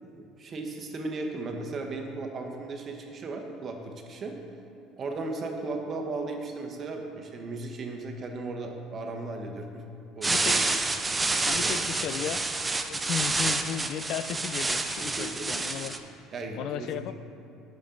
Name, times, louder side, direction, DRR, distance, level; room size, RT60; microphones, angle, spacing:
voice 1, 0.0-4.3 5.0-9.8 10.2-10.6 11.5-11.9 15.2-15.6 16.3-17.1, right 3 dB, 35° right, 3 dB, 1.0 m, -36 dB
sound 1, 10.2-16.0, right 3 dB, 15° right, 0.5 m, -28 dB
voice 2, 10.3-10.6 11.4-12.5 12.9-16.2 16.6-17.1, left 9 dB, 60° left, 12 dB, 0.3 m, -35 dB
12.5 x 5.2 x 3.8 m, 2.7 s
cardioid pair, 120°, 0 cm